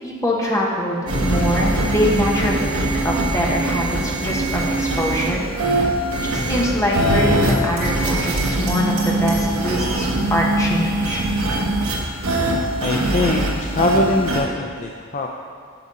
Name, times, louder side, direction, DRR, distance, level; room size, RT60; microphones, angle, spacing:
voice 1, 0.0-5.9 6.2-11.2, equal, 15° left, -3 dB, 1.1 m, -23 dB
sound 1, 1.1-14.4, right 1 dB, 80° right, 1.1 m, -22 dB
Hammer, 7.5-9.6, right 2 dB, 55° right, 2.1 m, -36 dB
voice 2, 12.8-15.3, left 2 dB, 35° left, 1 dB, 0.4 m, -22 dB
7.1 x 6.8 x 4.9 m, 2.1 s
head